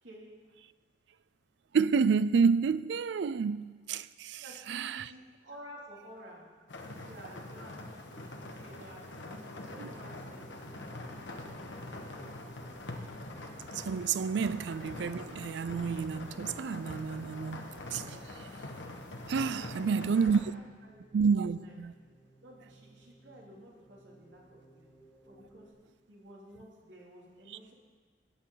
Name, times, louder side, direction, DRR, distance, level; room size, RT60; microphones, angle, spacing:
voice 1, 1.7-4.4 4.7-5.0 9.8-9.9 13.7-18.0 19.3-20.4 21.1-21.9, right 5 dB, 65° right, 0.4 m, -29 dB
voice 2, 4.4-9.3 9.7-11.0 19.6-21.0 21.2-21.8 22.4-24.9 25.2-25.7 26.1-27.7, equal, 85° right, 2.9 m, -52 dB
sound 1, 6.7-20.4, left 2 dB, 75° left, 1.3 m, -44 dB
sound 2, 8.0-25.7, right 1 dB, 25° left, 3.9 m, -59 dB
17.0 x 8.6 x 4.0 m
head